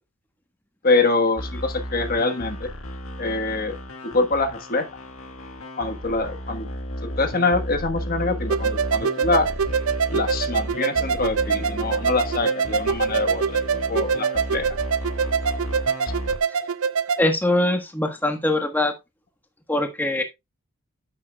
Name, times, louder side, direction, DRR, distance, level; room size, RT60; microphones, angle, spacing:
voice 1, 0.8-2.7 3.2-3.8 4.0-4.9 5.8-6.7 7.0-9.5 10.1-14.8, left 3 dB, 40° left, 1.3 m, -24 dB
sound 1, 1.4-16.4, equal, 65° left, 2.1 m, -33 dB
sound 2, 8.5-17.2, right 6 dB, 75° right, 0.6 m, -24 dB
voice 2, 17.2-18.9 19.7-20.2, left 1 dB, 10° left, 1.2 m, -22 dB
10.5 x 7.9 x 2.3 m
head